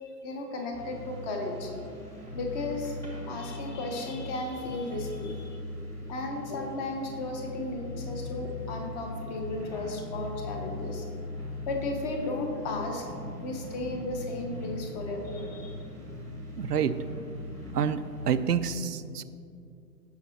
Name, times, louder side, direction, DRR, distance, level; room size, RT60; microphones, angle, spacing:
voice 1, 0.0-1.7 2.3-3.0 3.3-5.7 6.1-11.0 11.7-13.0 13.4-15.9, left 2 dB, 25° left, 2 dB, 1.1 m, -35 dB
sound 1, 0.7-18.6, left 2 dB, 5° left, 1.2 m, -40 dB
voice 2, 16.6-16.9 17.7-18.0 18.3-19.2, right 8 dB, 70° right, 13 dB, 0.6 m, -27 dB
16.5 x 5.5 x 3.0 m, 2.5 s
figure-of-eight pair, 115°, 50 cm